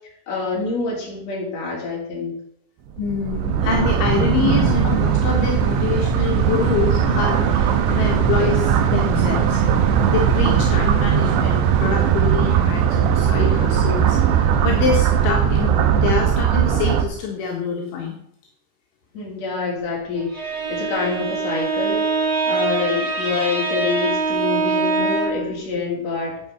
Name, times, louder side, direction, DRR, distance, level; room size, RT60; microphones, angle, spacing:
voice 1, 0.3-2.4 19.1-22.1 22.4-26.4, left 4 dB, 35° left, -3 dB, 4.9 m, -26 dB
voice 2, 3.0-9.6 10.1-18.2, left 6 dB, 70° left, -1 dB, 4.1 m, -26 dB
sound 1, 3.0-17.0, right 8 dB, 75° right, 3.0 m, -18 dB
Bowed string instrument, 20.2-25.5, right 3 dB, 20° right, 6.3 m, -23 dB
9.7 x 9.7 x 6.8 m, 0.70 s
omnidirectional pair, 5.8 m